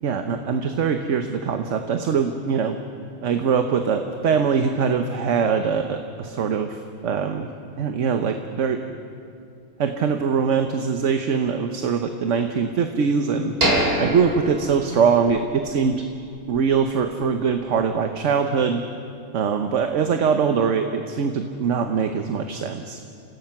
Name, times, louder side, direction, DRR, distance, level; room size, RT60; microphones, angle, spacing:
voice 1, 0.0-2.8 3.2-7.5 7.8-8.8 9.8-13.5 14.0-16.0 16.5-18.8 19.3-23.0, right 6 dB, 60° right, 6 dB, 1.2 m, -22 dB
sound 1, 13.6-15.5 15.9-16.0 16.5-16.7, right 1 dB, 40° right, 2.9 m, -24 dB
28.0 x 18.0 x 5.9 m, 2.4 s
omnidirectional pair, 1.5 m